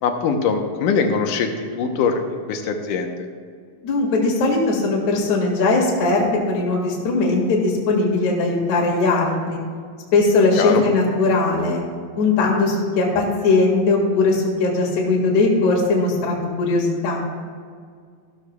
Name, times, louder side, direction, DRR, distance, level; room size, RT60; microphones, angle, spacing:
voice 1, 0.0-3.3 10.6-10.8, left 5 dB, 75° left, 4 dB, 2.4 m, -22 dB
voice 2, 3.8-9.6 10.1-11.8 12.2-17.2, left 3 dB, 60° left, -2 dB, 3.1 m, -19 dB
14.5 x 13.0 x 2.3 m, 2.1 s
omnidirectional pair, 4.0 m